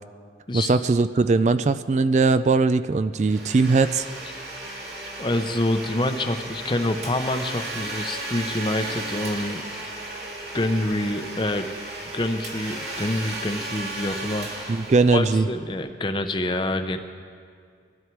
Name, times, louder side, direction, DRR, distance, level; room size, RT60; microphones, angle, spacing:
voice 1, 0.5-4.1 14.7-15.5, right 3 dB, 40° right, 12 dB, 0.3 m, -20 dB
Domestic sounds home sounds, 3.2-15.8, right 2 dB, 70° right, 2.5 m, -35 dB
voice 2, 5.2-9.6 10.5-11.7 12.1-14.8 15.1-17.0, left 1 dB, 25° left, 7 dB, 0.8 m, -26 dB
20.5 x 12.5 x 4.6 m, 2.2 s
head